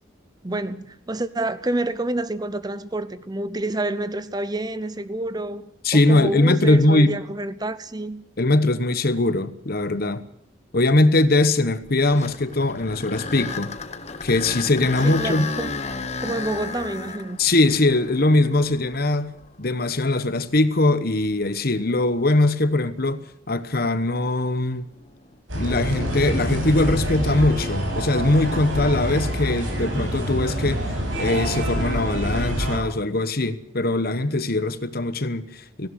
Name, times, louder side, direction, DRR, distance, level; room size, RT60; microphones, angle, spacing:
voice 1, 0.4-8.2 15.0-15.7 16.2-17.4, right 2 dB, 20° right, 0.7 m, -28 dB
voice 2, 5.8-7.2 8.4-10.2 10.7-13.7 14.2-15.5 17.4-19.3 19.6-24.9 25.6-35.9, left 2 dB, 50° left, 1.2 m, -21 dB
sound 1, 11.8-19.9 20.5-20.6 21.3-21.4 25.0-25.3, left 4 dB, 35° left, 1.3 m, -33 dB
sound 2, 25.5-32.8, equal, 75° right, 7.6 m, -26 dB
17.5 x 16.5 x 9.3 m
head